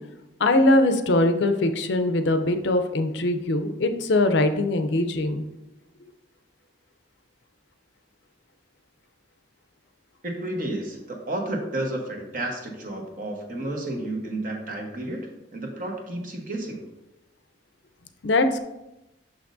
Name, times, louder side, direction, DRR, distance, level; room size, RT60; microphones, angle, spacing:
voice 1, 0.4-5.5 18.2-18.6, left 2 dB, 70° left, 8 dB, 0.5 m, -21 dB
voice 2, 10.2-16.8, right 1 dB, 45° right, 1 dB, 1.0 m, -31 dB
6.3 x 5.9 x 2.5 m, 0.94 s
head